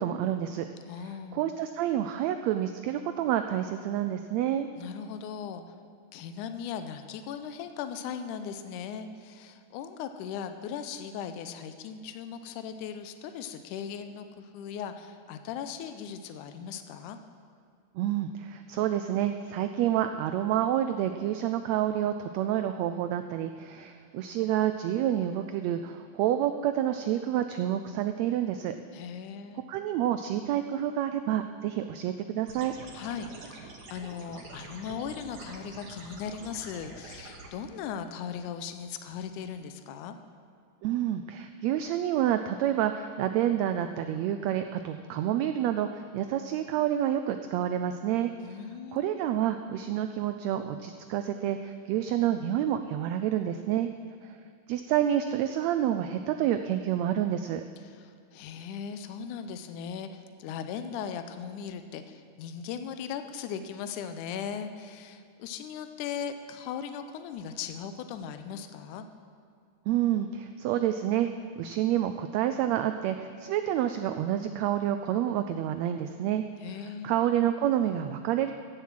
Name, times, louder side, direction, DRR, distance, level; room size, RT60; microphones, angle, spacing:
voice 1, 0.0-0.7 1.3-4.7 18.0-28.7 29.7-32.7 40.8-48.3 48.9-53.9 54.2-54.4 54.7-57.6 69.9-71.3 71.6-76.4 77.0-78.5, right 11 dB, 90° right, 8 dB, 1.5 m, -28 dB
voice 2, 0.9-1.5 4.8-5.6 6.1-17.2 28.9-29.7 32.9-40.2 48.4-49.1 57.8-69.0 76.6-77.1, left 7 dB, 80° left, 9 dB, 2.1 m, -38 dB
sound 1, 32.5-37.5, right 3 dB, 55° right, 1.1 m, -46 dB
15.0 x 7.2 x 7.5 m, 2.2 s
omnidirectional pair, 3.6 m